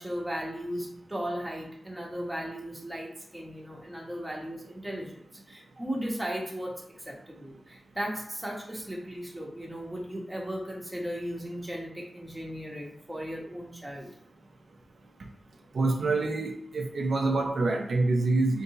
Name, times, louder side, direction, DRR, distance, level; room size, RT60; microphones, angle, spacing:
voice 1, 0.0-5.2 5.5-14.1, equal, 10° right, -2 dB, 1.2 m, -36 dB
voice 2, 15.7-18.6, right 3 dB, 75° right, 1 dB, 0.5 m, -26 dB
3.6 x 2.6 x 2.8 m, 0.72 s
cardioid pair, 65°, 0 cm